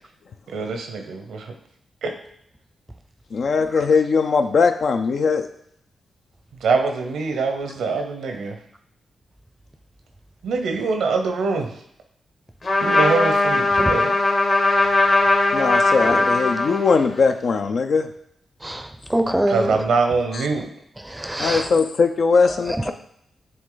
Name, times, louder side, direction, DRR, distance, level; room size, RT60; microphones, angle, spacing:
voice 1, 0.5-1.5 2.0-2.1 6.6-8.6 10.4-11.8 12.8-14.1 19.5-20.7, right 4 dB, 90° right, 5 dB, 0.8 m, -23 dB
voice 2, 3.3-5.5 15.5-18.1 20.3-20.5 21.4-22.9, left 5 dB, 65° left, 7 dB, 0.4 m, -20 dB
Trumpet, 12.6-17.2, left 2 dB, 50° left, 1.3 m, -19 dB
voice 3, 18.6-19.8 21.1-21.7, right 1 dB, 10° right, 8 dB, 0.5 m, -24 dB
7.7 x 3.2 x 3.9 m, 0.70 s
cardioid pair, 70°, 0 cm